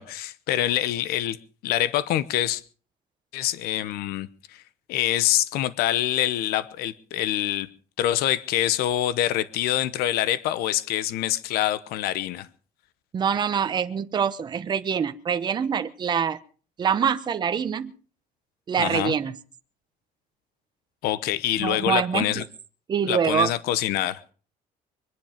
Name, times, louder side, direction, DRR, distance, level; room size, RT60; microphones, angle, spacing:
voice 1, 0.0-2.6 3.3-4.6 4.9-7.7 8.0-12.5 18.8-19.1 21.0-22.4 23.0-24.2, left 13 dB, 80° left, 16 dB, 0.9 m, -25 dB
voice 2, 13.1-16.4 16.8-17.9 18.7-19.3 21.6-22.4 22.9-23.5, right 7 dB, 30° right, 9 dB, 0.9 m, -25 dB
23.5 x 10.5 x 5.1 m, 0.41 s
cardioid pair, 160°, 16 cm